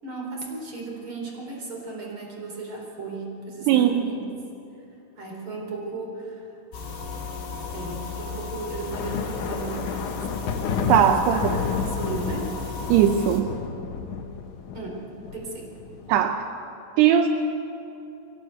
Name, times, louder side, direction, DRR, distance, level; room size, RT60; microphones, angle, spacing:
voice 1, 0.0-4.2 5.2-6.5 7.7-10.5 11.0-12.5 14.7-15.0 15.3-15.7, right 3 dB, 30° right, 0 dB, 4.2 m, -35 dB
voice 2, 3.7-4.1 10.9-11.4 12.9-13.5 16.1-16.4 17.0-17.3, right 9 dB, 80° right, 6 dB, 2.4 m, -19 dB
sound 1, 6.7-13.4, left 4 dB, 60° left, 6.5 m, -34 dB
sound 2, 8.9-16.2, left 6 dB, 85° left, 1.7 m, -31 dB
23.0 x 17.5 x 8.1 m, 2.9 s
omnidirectional pair, 5.7 m